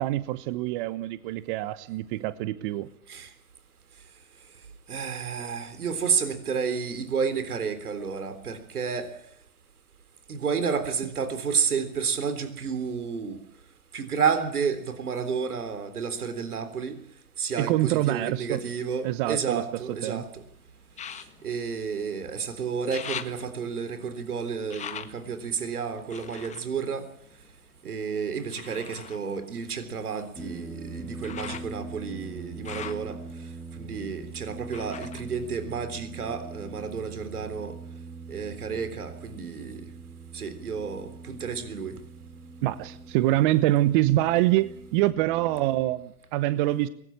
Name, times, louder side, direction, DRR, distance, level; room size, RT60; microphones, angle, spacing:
voice 1, 0.0-2.9 17.6-18.6 19.0-19.6 20.0-20.2 42.6-46.9, right 15 dB, 35° right, 15 dB, 1.0 m, -25 dB
voice 2, 4.9-9.1 10.3-13.4 13.9-17.0 17.4-20.4 21.1-27.1 27.8-33.2 33.7-37.8 38.3-39.8 40.3-42.0, right 6 dB, 80° right, 10 dB, 3.6 m, -31 dB
sound 1, 18.7-20.1 20.9-22.4 22.7-27.9 28.5-36.3 36.7-37.5 38.0-38.1, left 8 dB, 15° left, 1.6 m, -44 dB
sound 2, 30.4-46.0, right 4 dB, ahead, 1.8 m, -42 dB
23.5 x 20.0 x 8.7 m, 0.70 s
hypercardioid pair, 125°, 44 cm